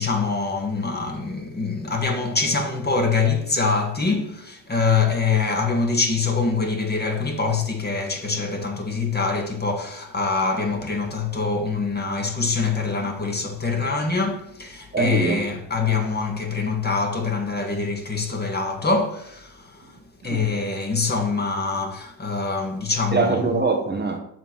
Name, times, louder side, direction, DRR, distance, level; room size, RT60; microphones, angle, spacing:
voice 1, 0.0-20.0 20.2-23.4, left 4 dB, 20° left, 1.7 m, -24 dB
voice 2, 14.9-15.4 20.2-20.5 23.1-24.2, right 4 dB, 20° right, 1.3 m, -23 dB
7.7 x 3.9 x 5.9 m
hypercardioid pair, 70°, 48 cm